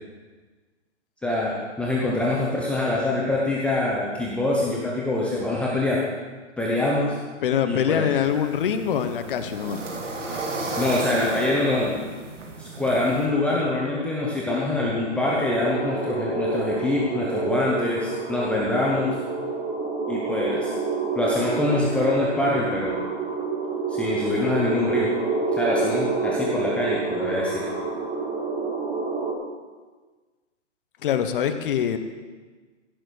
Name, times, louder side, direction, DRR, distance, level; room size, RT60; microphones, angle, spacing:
voice 1, 1.2-6.0 6.6-7.2 7.6-8.1 10.8-12.0 12.6-19.2 20.1-20.7 21.1-23.0 23.9-25.1 25.6-27.6, left 2 dB, 5° left, -5 dB, 1.0 m, -24 dB
voice 2, 7.4-9.8 31.0-32.0, left 9 dB, 45° left, 9 dB, 1.2 m, -24 dB
sound 1, 8.2-13.3, right 2 dB, 85° right, 2.9 m, -33 dB
sound 2, 15.5-29.3, right 4 dB, 15° right, 2.0 m, -28 dB
16.0 x 7.0 x 6.4 m, 1.3 s
hypercardioid pair, 150°, 36 cm